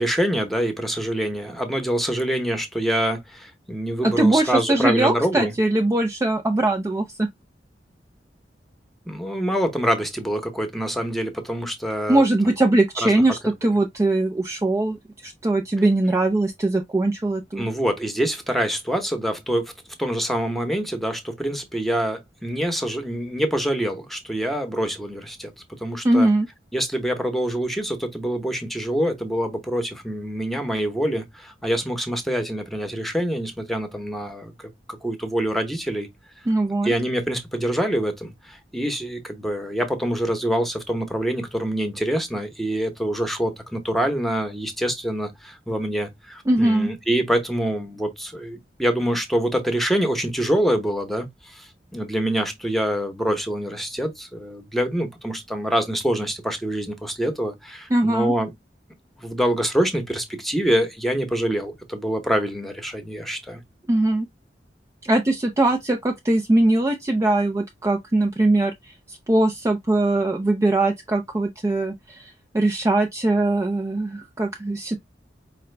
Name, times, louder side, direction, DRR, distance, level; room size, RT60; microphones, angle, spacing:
voice 1, 0.0-5.5 9.1-12.2 13.0-13.2 17.6-19.7 20.0-25.5 25.8-26.3 26.7-36.1 36.8-58.5 59.2-63.6, equal, ahead, 0.9 m, -25 dB
voice 2, 4.0-7.3 12.1-15.0 15.2-17.7 26.0-26.5 36.5-36.9 46.5-46.9 57.9-58.3 63.9-64.3 65.0-68.7 69.1-75.0, right 2 dB, 20° right, 0.4 m, -21 dB
4.9 x 2.2 x 3.2 m
head